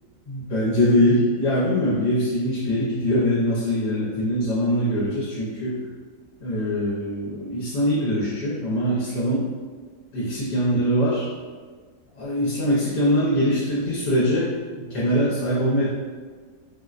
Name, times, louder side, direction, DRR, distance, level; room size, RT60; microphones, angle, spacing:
voice 1, 0.3-5.8 6.4-9.5 10.1-11.3 12.1-15.9, equal, 75° left, -8 dB, 1.3 m, -22 dB
3.9 x 2.0 x 2.4 m, 1.5 s
omnidirectional pair, 1.8 m